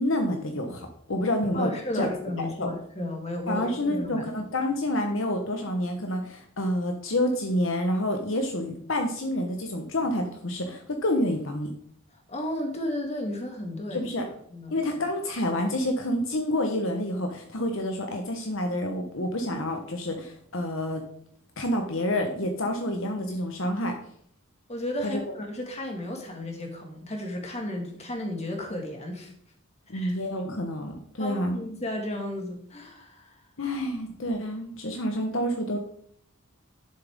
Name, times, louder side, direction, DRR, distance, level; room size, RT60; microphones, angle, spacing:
voice 1, 0.0-2.1 2.4-2.7 3.5-11.7 13.9-14.3 14.7-21.0 21.6-24.0 25.0-25.2 29.9-31.6 33.6-35.8, left 1 dB, 65° left, 4 dB, 1.1 m, -28 dB
voice 2, 1.5-4.3 12.3-14.1 14.5-14.8 24.7-29.3 29.9-30.1 31.2-33.4, left 1 dB, 30° left, 2 dB, 2.0 m, -33 dB
10.5 x 7.8 x 3.6 m, 0.64 s
head